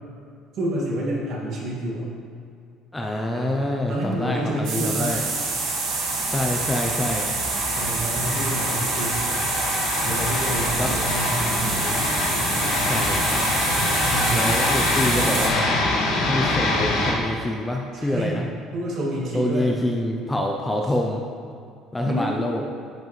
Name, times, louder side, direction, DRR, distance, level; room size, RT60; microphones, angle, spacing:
voice 1, 0.5-2.1 3.3-3.6 3.9-5.1 7.8-9.2 10.0-12.0 14.1-14.4 17.9-18.4 18.7-19.7 22.0-22.4, right 1 dB, 45° right, -4 dB, 2.0 m, -28 dB
voice 2, 2.9-5.2 6.3-7.3 10.8-10.9 12.8-13.5 14.3-15.7 16.3-18.5 19.3-21.2 21.9-22.6, left 1 dB, 5° left, 1 dB, 0.4 m, -26 dB
sound 1, 4.6-17.1, left 2 dB, 75° left, 1.8 m, -25 dB
sound 2, 4.6-15.5, right 4 dB, 85° right, 2.0 m, -27 dB
10.5 x 7.2 x 3.2 m, 2.4 s
cardioid pair, 175°, 0 cm